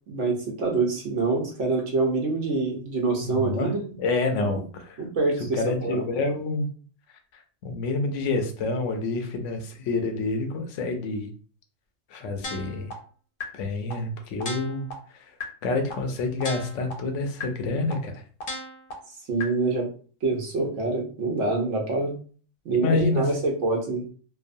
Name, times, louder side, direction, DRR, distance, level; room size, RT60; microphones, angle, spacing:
voice 1, 0.1-3.9 4.4-4.7 5.0-6.0 19.3-19.9 20.2-22.2 22.6-24.0, right 3 dB, 80° right, 0 dB, 1.1 m, -26 dB
voice 2, 3.2-3.7 4.0-5.0 5.4-6.7 7.3-11.3 12.1-12.9 13.5-14.9 15.2-15.3 15.6-18.2 22.7-23.3, left 3 dB, 85° left, 5 dB, 0.9 m, -28 dB
sound 1, 12.4-12.9 13.4-13.5 13.9-14.0 14.4-14.9 15.4-15.5 15.9-16.0 16.4-16.9 17.4-17.5 17.9-18.0 18.4-18.9 19.4-19.5, left 3 dB, 55° left, 0.7 m, -34 dB
3.0 x 2.0 x 2.5 m, 0.42 s
omnidirectional pair, 1.2 m